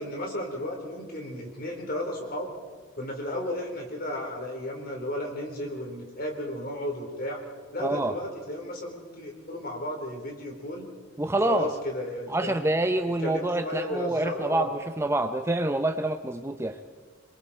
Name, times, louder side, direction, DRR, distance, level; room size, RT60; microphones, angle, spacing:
voice 1, 0.0-2.5 3.0-7.4 7.7-10.9 11.4-12.6 13.2-14.7, left 1 dB, 50° left, 1 dB, 4.1 m, -34 dB
voice 2, 7.8-8.1 11.2-11.7 12.3-16.8, right 1 dB, 15° right, 8 dB, 0.7 m, -27 dB
27.0 x 22.5 x 4.4 m, 1.4 s
head